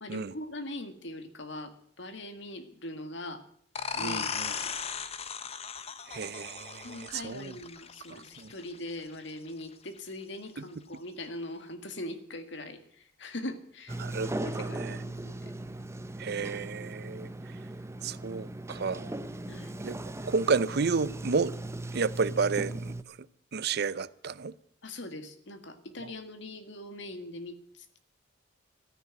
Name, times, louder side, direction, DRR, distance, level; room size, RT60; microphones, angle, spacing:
voice 1, 0.0-3.4 4.0-4.7 6.8-15.5 19.5-19.7 24.8-28.0, left 1 dB, 65° left, 2.0 m, -41 dB
sound 1, 3.7-9.1, left 6 dB, 30° left, 0.8 m, -37 dB
voice 2, 3.9-4.5 6.1-7.6 8.1-8.5 10.6-10.7 14.0-15.0 16.2-17.3 18.0-19.1 19.8-20.0 20.2-21.6 21.9-23.2 23.5-24.5 26.0-26.1, right 5 dB, 55° right, 0.6 m, -31 dB
Sliding door, 13.9-23.0, right 2 dB, 15° right, 0.7 m, -38 dB
14.0 x 9.9 x 9.7 m
head